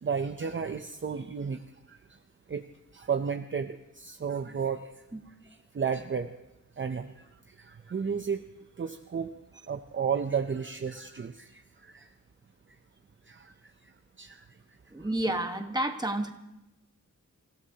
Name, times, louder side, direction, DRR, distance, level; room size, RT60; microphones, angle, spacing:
voice 1, 0.0-1.6 1.9-2.0 2.5-2.6 2.9-4.8 5.7-6.3 6.8-7.1 7.6-8.4 8.8-9.3 9.7-11.6 11.9-12.1 13.3-13.5 14.2-14.4, right 6 dB, 40° right, 7 dB, 0.6 m, -32 dB
voice 2, 14.9-16.3, right 1 dB, 15° right, 5 dB, 1.3 m, -30 dB
29.0 x 16.0 x 2.9 m, 0.93 s
wide cardioid pair, 130°, 32 cm